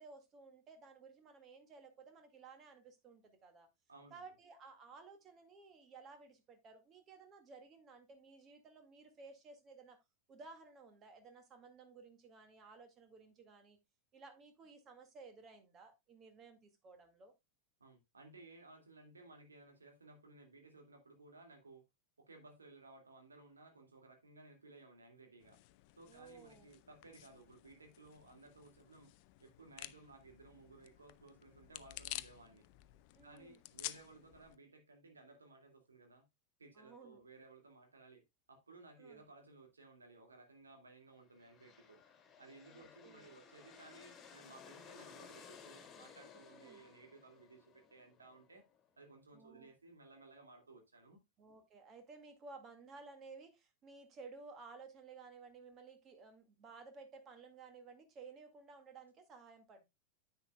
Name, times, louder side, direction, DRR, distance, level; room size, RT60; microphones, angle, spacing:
voice 1, 0.0-3.7 4.1-10.0 10.3-13.8 14.1-17.3 26.1-26.7 33.2-33.6 36.8-37.2 39.0-39.2 42.7-43.4 46.5-46.8 49.3-49.7 51.4-59.9, right 4 dB, 30° right, 2.0 m, -56 dB
voice 2, 3.9-4.2 17.8-21.9 22.2-25.6 25.9-29.1 29.4-32.7 33.2-36.3 36.6-38.2 38.5-42.0 42.4-48.6 49.0-51.2, right 3 dB, 75° right, 2.3 m, -59 dB
sound 1, 25.4-34.6, left 17 dB, 45° left, 0.5 m, -52 dB
sound 2, 41.2-48.9, left 6 dB, 25° left, 2.5 m, -58 dB
10.0 x 8.2 x 2.3 m
figure-of-eight pair, 90°, 0 cm